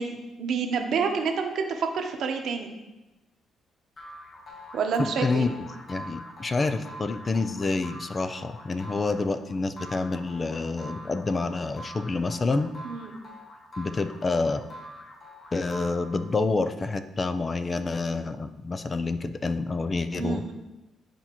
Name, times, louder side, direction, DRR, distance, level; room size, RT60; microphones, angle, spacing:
voice 1, 0.0-2.7 4.7-5.5 12.8-13.1 20.2-20.5, right 5 dB, 70° right, 4 dB, 0.9 m, -28 dB
sound 1, 4.0-16.5, equal, 50° left, 1.2 m, -44 dB
voice 2, 5.0-5.5 5.9-12.7 13.8-14.6 15.5-20.4, left 3 dB, 30° left, 10 dB, 0.4 m, -28 dB
10.0 x 4.2 x 3.0 m, 1.0 s
cardioid pair, 90°, 0 cm